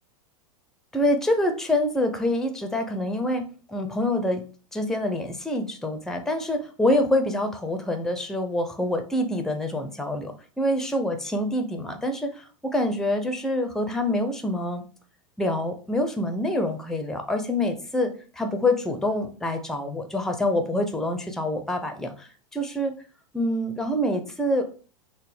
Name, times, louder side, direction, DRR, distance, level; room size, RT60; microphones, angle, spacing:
voice 1, 0.9-4.4 4.7-14.8 15.4-22.9 23.3-24.9, left 1 dB, 5° left, 6 dB, 0.6 m, -26 dB
3.8 x 2.1 x 3.4 m, 0.37 s
hypercardioid pair, 105°, 17 cm